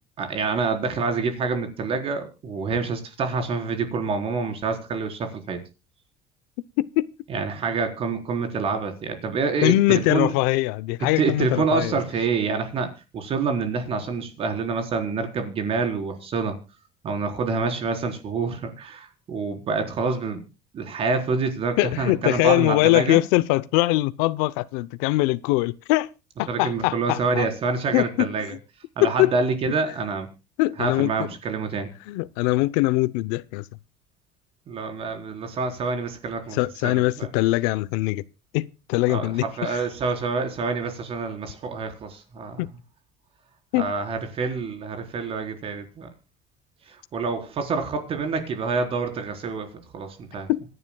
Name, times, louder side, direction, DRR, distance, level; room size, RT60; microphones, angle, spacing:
voice 1, 0.2-5.6 7.3-10.3 11.0-16.6 17.0-20.4 20.7-23.2 26.5-28.6 29.0-30.3 30.8-31.9 34.7-36.6 36.8-37.3 39.1-42.6 43.8-46.1 46.9-50.5, right 4 dB, 45° right, 4.1 m, -27 dB
voice 2, 6.8-7.1 9.6-12.0 21.8-26.1 26.4-27.5 27.9-28.3 29.0-29.3 30.6-31.3 32.1-33.6 36.5-38.2 38.5-39.8 42.6-42.7 43.7-43.9 50.5-50.6, left 19 dB, 90° left, 0.7 m, -22 dB
26.0 x 11.0 x 2.3 m
cardioid pair, 125°, 14 cm